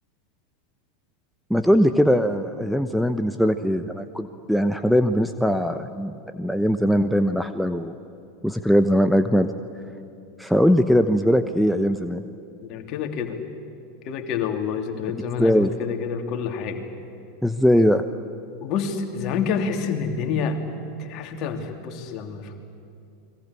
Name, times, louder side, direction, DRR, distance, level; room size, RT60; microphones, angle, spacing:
voice 1, 1.5-7.9 8.4-9.5 10.4-12.2 15.4-15.7 17.4-18.0, equal, ahead, 8 dB, 1.0 m, -20 dB
voice 2, 12.6-13.4 14.0-16.8 18.6-20.6 21.0-22.6, left 6 dB, 45° left, 4 dB, 3.1 m, -28 dB
30.0 x 22.0 x 8.5 m, 2.6 s
figure-of-eight pair, 85°, 0 cm